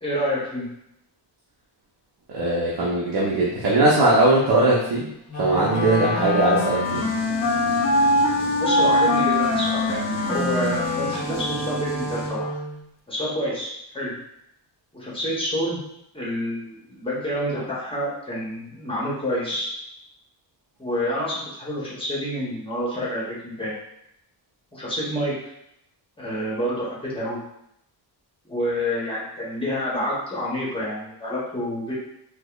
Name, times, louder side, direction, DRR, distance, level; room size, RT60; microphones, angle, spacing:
voice 1, 0.0-0.7 8.6-12.5 13.1-14.2 14.9-15.8 16.1-19.7 20.8-23.7 24.7-25.4 26.2-27.4 28.4-31.9, equal, 15° left, -6 dB, 0.8 m, -28 dB
voice 2, 2.3-5.1 5.4-7.0, right 2 dB, 60° right, -6 dB, 0.8 m, -20 dB
Wind instrument woodwind instrument, 5.3-12.8, left 1 dB, 45° left, 0.5 m, -23 dB
sound 1, 6.8-12.3, right 1 dB, 15° right, 0.6 m, -36 dB
4.7 x 2.1 x 2.3 m, 0.78 s
wide cardioid pair, 160°, 42 cm